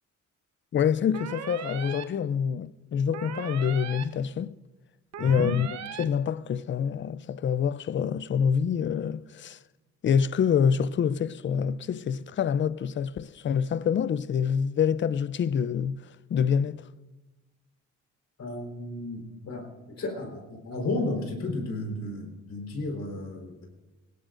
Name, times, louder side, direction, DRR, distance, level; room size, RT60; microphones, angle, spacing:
voice 1, 0.7-4.5 5.2-5.7 6.0-9.6 10.0-16.9, left 7 dB, 40° left, 0.5 m, -26 dB
sound 1, 1.1-2.0 3.1-4.0 5.1-6.0, right 9 dB, 65° right, 1.0 m, -38 dB
voice 2, 5.2-5.5 18.4-19.7 20.0-23.7, left 2 dB, 60° left, 4.3 m, -33 dB
19.5 x 17.5 x 2.6 m
cardioid pair, 90°, 30 cm